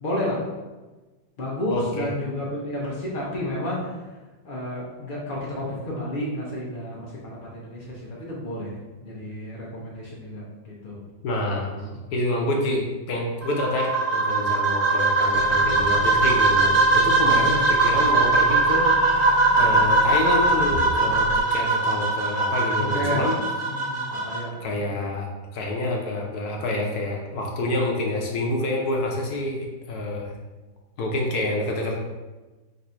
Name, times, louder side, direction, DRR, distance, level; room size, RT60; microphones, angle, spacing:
voice 1, 0.0-0.4 1.4-3.8 4.4-8.8 9.0-11.0 11.7-12.0 12.5-12.7 17.3-17.7 22.9-23.2 23.7-25.0, left 1 dB, 85° left, -5 dB, 0.4 m, -31 dB
voice 2, 1.7-2.1 11.2-11.7 12.1-23.4 24.6-25.3 25.5-30.3 31.0-31.9, left 1 dB, 65° left, 0 dB, 1.1 m, -27 dB
sound 1, 13.4-24.4, right 3 dB, 40° right, 0.9 m, -20 dB
sound 2, 15.3-21.4, left 2 dB, 60° right, 1.1 m, -36 dB
3.9 x 2.6 x 4.2 m, 1.2 s
omnidirectional pair, 2.0 m